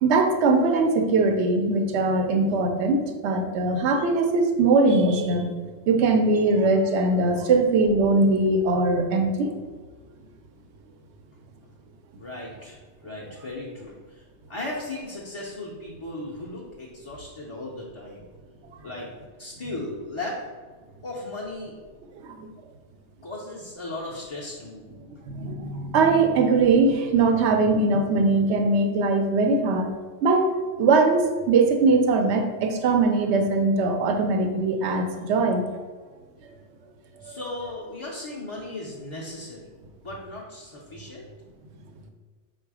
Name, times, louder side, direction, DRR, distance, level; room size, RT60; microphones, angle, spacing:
voice 1, 0.0-5.5 5.9-9.5 22.2-22.5 25.3-29.9 30.2-30.5 30.8-35.7 37.2-37.4, right 3 dB, 75° right, 5 dB, 0.9 m, -21 dB
voice 2, 12.2-12.8 13.0-18.3 18.8-19.1 19.4-20.4 21.0-21.8 23.2-24.9 37.2-39.7 40.0-41.3, left 2 dB, 40° left, -5 dB, 0.5 m, -36 dB
4.6 x 2.4 x 4.7 m, 1.4 s
omnidirectional pair, 1.2 m